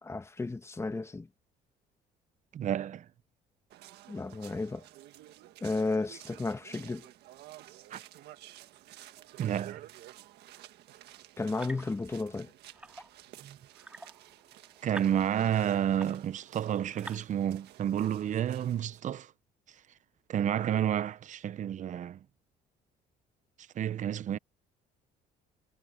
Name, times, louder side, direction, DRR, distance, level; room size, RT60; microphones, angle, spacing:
voice 1, 0.0-1.3 4.1-4.8 5.6-7.1 11.4-12.5, left 3 dB, 15° left, 1.4 m, -33 dB
voice 2, 2.5-3.1 7.9-8.0 9.4-9.8 13.4-13.6 14.8-19.3 20.3-22.2 23.8-24.4, right 10 dB, 45° right, 0.7 m, -30 dB
sound 1, 3.7-19.0, right 14 dB, 75° right, 1.6 m, -52 dB
sound 2, 11.4-12.2 12.7-13.2 13.7-16.4 16.8-17.2, right 1 dB, 5° right, 2.2 m, -48 dB
cardioid pair, 110°, 17 cm